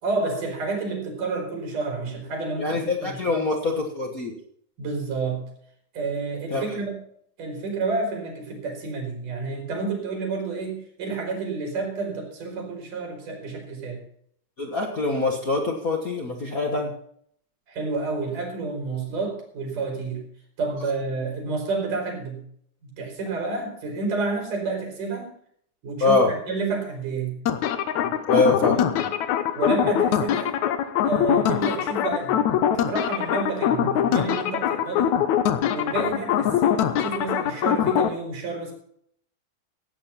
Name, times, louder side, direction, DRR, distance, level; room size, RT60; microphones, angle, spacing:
voice 1, 0.0-3.4 4.8-5.4 5.9-7.0 7.4-14.0 17.7-20.3 20.6-22.4 22.8-25.3 25.8-27.4 28.6-28.8 29.6-30.6 31.0-35.2 35.7-38.7, right 4 dB, 90° right, 2 dB, 5.6 m, -30 dB
voice 2, 2.6-4.3 6.5-6.6 14.6-16.9 26.0-26.3 28.0-29.1 36.0-36.1, left 3 dB, 45° left, 2 dB, 1.1 m, -24 dB
sound 1, 27.5-38.1, left 9 dB, 70° left, 2.2 m, -23 dB
16.0 x 8.9 x 5.7 m, 0.65 s
omnidirectional pair, 3.6 m